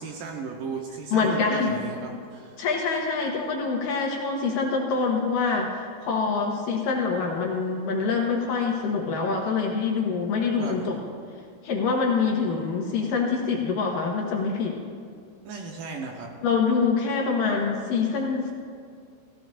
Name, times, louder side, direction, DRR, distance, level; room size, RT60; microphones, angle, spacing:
voice 1, 0.0-2.6 10.6-10.9 15.4-16.3, right 4 dB, 70° right, 0 dB, 2.3 m, -35 dB
voice 2, 1.1-1.8 2.6-11.0 11.6-14.8 16.4-18.5, left 4 dB, 70° left, 0 dB, 2.5 m, -25 dB
17.5 x 14.5 x 2.5 m, 2.2 s
omnidirectional pair, 4.5 m